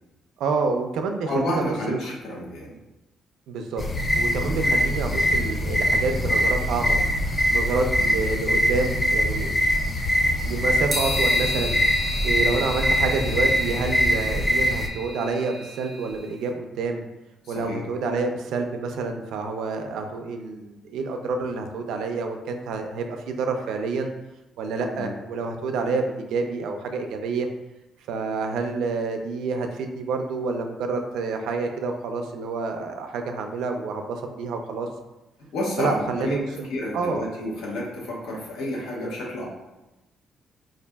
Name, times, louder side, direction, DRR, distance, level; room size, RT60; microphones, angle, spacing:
voice 1, 0.4-2.0 3.5-3.8 4.2-7.0 7.5-9.5 9.9-10.0 10.4-11.8 12.2-17.0 17.5-24.1 24.6-27.5 28.1-34.9 35.8-36.7 36.9-37.3, right 4 dB, 90° right, 4 dB, 0.4 m, -28 dB
voice 2, 1.3-2.8 4.5-4.7 8.0-8.1 17.4-17.8 25.0-25.1 35.5-39.5, left 1 dB, 85° left, -4 dB, 1.0 m, -30 dB
sound 1, 3.8-14.9, equal, 20° left, 0.3 m, -23 dB
sound 2, 10.9-16.2, equal, 15° right, 0.6 m, -32 dB
4.9 x 2.5 x 2.2 m, 1.0 s
cardioid pair, 170°, 0 cm